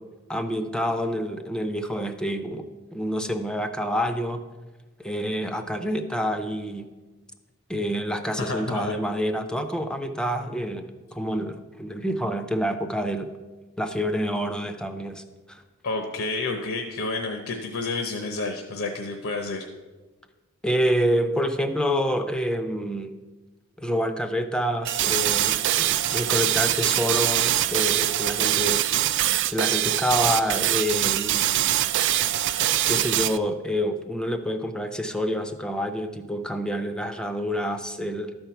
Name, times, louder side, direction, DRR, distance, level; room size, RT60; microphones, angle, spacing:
voice 1, 0.3-2.6 2.9-4.4 5.0-6.9 7.7-13.3 13.8-15.2 15.5-15.6 20.6-23.1 23.8-28.8 29.5-31.5 32.9-38.3, equal, 5° left, 7 dB, 0.5 m, -27 dB
voice 2, 8.4-8.9 15.8-19.7, left 3 dB, 70° left, 4 dB, 0.8 m, -30 dB
sound 1, 24.8-33.4, right 13 dB, 55° right, 0.3 m, -23 dB
12.0 x 4.5 x 6.9 m, 1.2 s
head